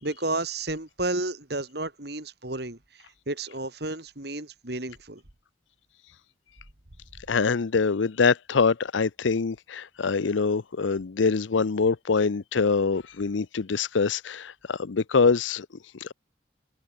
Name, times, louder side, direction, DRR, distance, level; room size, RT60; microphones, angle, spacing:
voice 1, 0.0-5.2, right 2 dB, 55° right, 2.7 m, -32 dB
voice 2, 7.3-15.7 16.0-16.1, left 4 dB, 80° left, 0.6 m, -24 dB
head